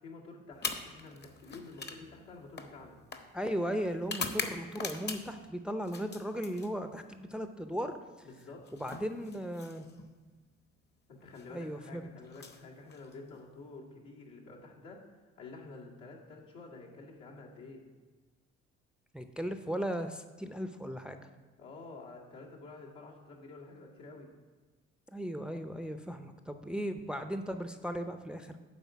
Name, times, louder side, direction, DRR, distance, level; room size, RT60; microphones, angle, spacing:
voice 1, 0.0-3.0 8.2-8.7 11.1-15.0 15.4-17.8 21.6-24.3, left 3 dB, 75° left, -3 dB, 2.0 m, -49 dB
sound 1, 0.5-5.5 5.8-7.1 8.3-10.1 11.2-11.5 12.2-13.4, left 4 dB, 35° left, 1.0 m, -42 dB
voice 2, 3.3-8.3 8.7-9.9 11.5-12.1 19.1-21.3 25.1-28.6, equal, 5° right, 8 dB, 0.5 m, -37 dB
9.4 x 3.9 x 7.1 m, 1.3 s
hypercardioid pair, 65°, 31 cm